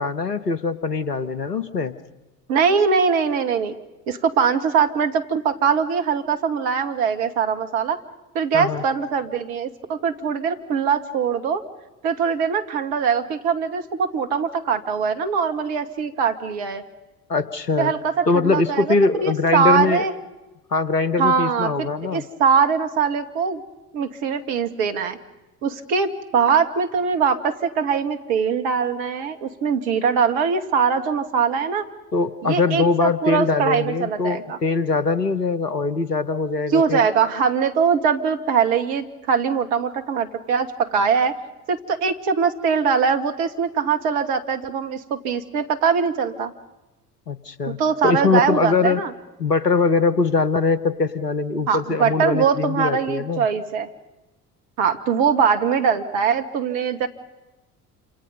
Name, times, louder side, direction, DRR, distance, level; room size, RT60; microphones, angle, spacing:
voice 1, 0.0-2.0 8.5-8.8 17.3-17.9 18.3-20.1 20.7-22.2 32.1-37.1 47.3-47.8 48.0-49.0 49.4-53.5, left 4 dB, 90° left, 13 dB, 1.2 m, -22 dB
voice 2, 2.5-3.7 4.1-8.0 8.3-11.6 12.0-16.8 17.8-18.9 19.2-20.1 21.2-21.9 22.1-23.6 23.9-25.2 25.6-31.9 32.4-34.6 36.7-41.4 41.7-46.5 47.8-49.1 51.7-53.9 54.8-57.1, right 6 dB, 60° right, 7 dB, 2.4 m, -22 dB
28.5 x 27.0 x 5.4 m, 1.0 s
figure-of-eight pair, 60°, 47 cm